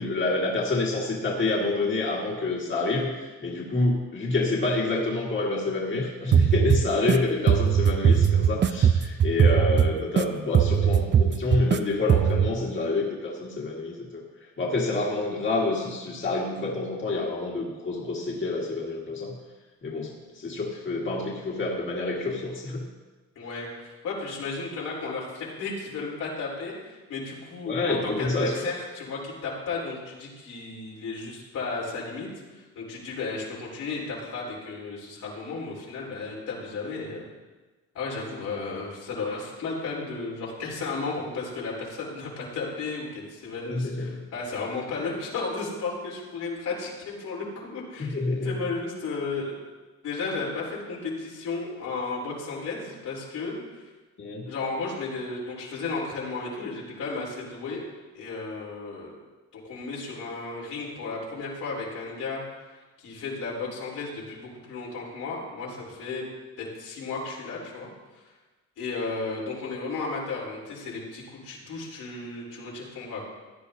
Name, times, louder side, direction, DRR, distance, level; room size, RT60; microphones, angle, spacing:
voice 1, 0.0-14.2 14.6-19.3 19.8-22.8 27.7-28.7 43.7-44.2 48.0-48.5 54.2-54.5, left 2 dB, 40° left, -2 dB, 1.9 m, -28 dB
sound 1, 6.3-7.2 7.5-10.2 10.5-11.8 12.1-12.5, right 8 dB, 40° right, 0.5 m, -20 dB
voice 2, 23.4-37.2 37.9-48.2 48.4-49.5 50.0-53.9 54.5-57.8 58.1-59.1 59.5-62.4 62.7-66.3 66.6-67.9 68.2-68.3 68.8-73.2, left 4 dB, 85° left, -5 dB, 4.0 m, -34 dB
16.0 x 10.0 x 2.8 m, 1.3 s
cardioid pair, 90°, 30 cm